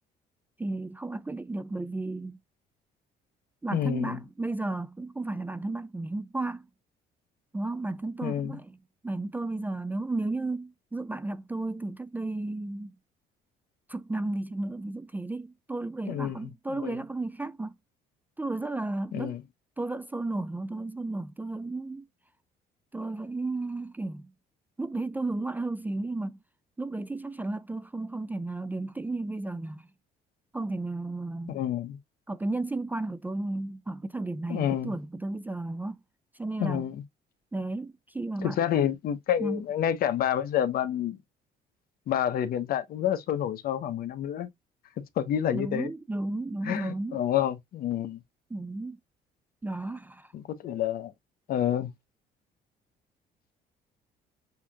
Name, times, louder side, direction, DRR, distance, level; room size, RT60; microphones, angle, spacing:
voice 1, 0.6-2.4 3.6-6.7 7.5-8.8 9.0-12.9 13.9-17.7 18.4-19.4 19.8-22.1 22.9-24.3 24.8-26.4 26.8-29.9 30.5-31.6 32.3-36.0 36.3-36.8 37.5-38.6 39.4-39.6 45.5-47.2 48.5-49.0 49.6-50.3, right 2 dB, 10° right, 0.4 m, -33 dB
voice 2, 3.7-4.2 8.2-8.5 16.1-16.5 16.8-17.0 19.1-19.4 31.5-32.0 34.5-34.9 36.6-37.0 38.4-41.2 42.1-44.5 45.2-45.9 46.6-48.2 50.3-51.1 51.5-51.9, left 10 dB, 60° left, 1.0 m, -28 dB
6.9 x 2.9 x 2.3 m
cardioid pair, 110°, 17 cm